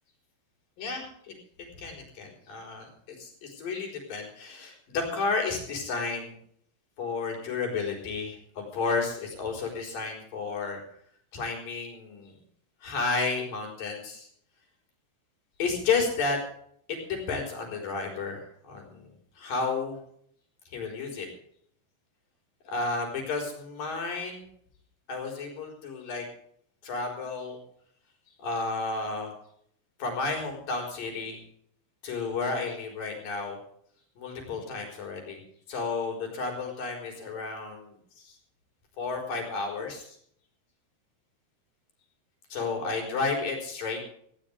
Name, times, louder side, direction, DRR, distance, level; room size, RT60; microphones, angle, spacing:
voice 1, 0.8-1.3 1.8-6.3 7.0-10.8 11.3-12.3 12.8-14.3 15.6-16.4 16.9-19.1 19.4-20.0 20.7-21.3 22.7-24.5 25.1-26.2 26.8-27.6 28.4-29.3 30.0-31.4 32.0-33.6 34.2-35.4 35.7-37.9 38.2-38.3 39.0-40.1 42.5-44.0, left 4 dB, 55° left, 1 dB, 5.9 m, -32 dB
18.5 x 16.0 x 3.5 m, 0.65 s
omnidirectional pair, 4.7 m